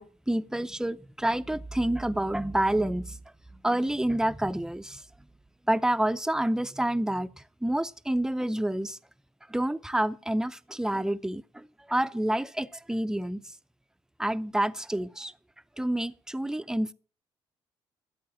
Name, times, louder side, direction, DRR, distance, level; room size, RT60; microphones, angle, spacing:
voice 1, 0.0-3.2 3.6-5.0 5.7-9.0 9.5-13.5 14.2-15.3 15.8-16.9, right 1 dB, 5° right, 0.6 m, -28 dB
13.5 x 8.3 x 6.0 m
cardioid pair, 75°, 11 cm